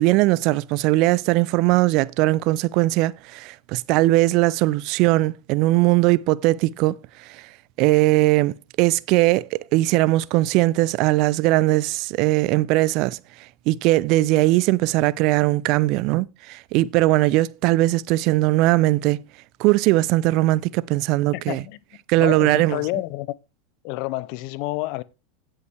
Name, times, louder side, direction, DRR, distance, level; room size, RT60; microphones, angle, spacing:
voice 1, 0.0-7.0 7.3-7.4 7.8-13.2 13.7-19.2 19.6-21.6 22.1-22.8, right 18 dB, 55° right, 0.4 m, -20 dB
voice 2, 21.3-21.8 22.2-23.4 23.8-25.0, left 18 dB, 55° left, 0.6 m, -29 dB
17.0 x 5.6 x 3.3 m
hypercardioid pair, 90°, 0 cm